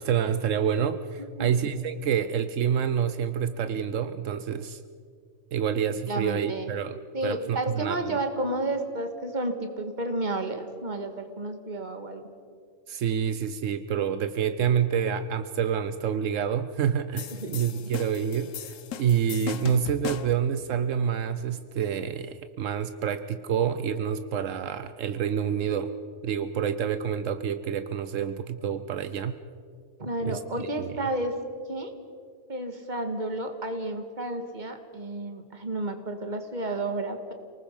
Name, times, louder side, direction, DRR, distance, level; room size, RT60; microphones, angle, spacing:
voice 1, 0.0-4.8 5.5-7.0 7.2-8.2 12.9-25.9 26.2-29.4 30.2-31.1, right 8 dB, 80° right, 11 dB, 1.1 m, -28 dB
voice 2, 1.2-1.6 6.1-6.7 7.1-12.2 17.3-17.9 30.0-31.4 31.7-31.9 32.5-37.3, right 2 dB, 35° right, 6 dB, 2.0 m, -31 dB
sound 1, 17.2-20.5, left 9 dB, 85° left, 1.2 m, -37 dB
29.5 x 19.5 x 5.4 m, 2.1 s
omnidirectional pair, 1.3 m